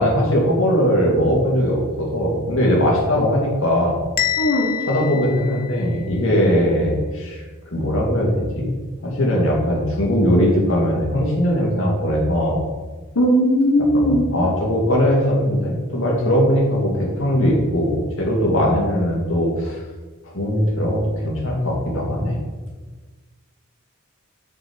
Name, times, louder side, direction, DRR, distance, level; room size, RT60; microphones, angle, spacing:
voice 1, 0.0-4.0 4.8-8.7 9.0-12.6 13.9-19.8 20.2-22.4, equal, 60° left, -2 dB, 2.4 m, -20 dB
Bell, 4.2-6.2, left 11 dB, 40° left, 0.6 m, -27 dB
voice 2, 4.4-4.7 13.1-14.2, equal, 90° left, -2 dB, 1.3 m, -17 dB
7.0 x 6.1 x 5.1 m, 1.3 s
head